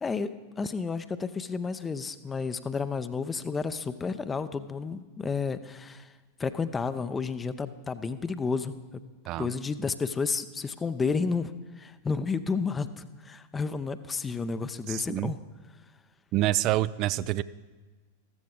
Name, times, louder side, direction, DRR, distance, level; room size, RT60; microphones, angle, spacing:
voice 1, 0.0-6.1 6.4-9.0 9.4-15.4, left 5 dB, 15° left, 12 dB, 0.6 m, -31 dB
voice 2, 14.9-15.3 16.3-17.4, right 15 dB, 40° right, 17 dB, 0.3 m, -27 dB
14.5 x 14.0 x 3.7 m, 1.3 s
figure-of-eight pair, 90°, 0 cm